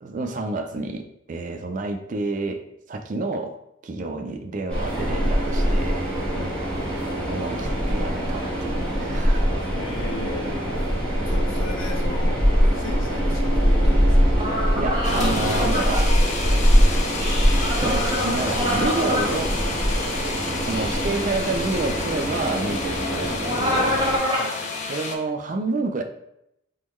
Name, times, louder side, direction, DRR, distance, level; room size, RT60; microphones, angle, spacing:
voice 1, 0.0-3.6 3.8-6.1 7.3-9.5 14.7-16.2 17.8-19.6 20.6-24.0 24.9-26.0, right 3 dB, 40° right, 6 dB, 0.3 m, -29 dB
Train, 4.7-24.2, equal, 5° left, 1.2 m, -23 dB
voice 2, 6.3-6.6 9.7-10.8 11.2-12.4 12.7-14.2 23.1-23.3 24.3-24.8, left 2 dB, 70° left, 1 dB, 0.8 m, -36 dB
sound 1, 14.4-15.9 17.5-19.3 23.4-24.5, equal, 20° right, 0.9 m, -26 dB
sound 2, 15.0-25.2, left 4 dB, 35° left, 0.4 m, -31 dB
3.7 x 3.0 x 3.1 m, 0.79 s
head